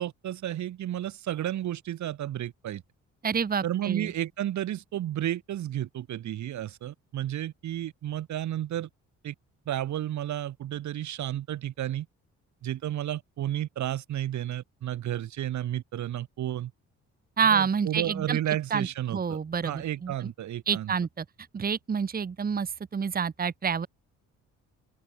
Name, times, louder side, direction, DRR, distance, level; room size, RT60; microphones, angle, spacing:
voice 1, 0.0-2.8 3.6-8.9 9.2-9.3 9.7-12.1 12.6-16.7 17.5-19.4 19.6-20.9, right 12 dB, 70° right, 1.9 m, -32 dB
voice 2, 3.2-4.1 17.4-18.4 18.7-20.3 20.7-21.2 21.5-23.9, right 6 dB, 30° right, 1.2 m, -28 dB
open air
cardioid pair, 90°, 30 cm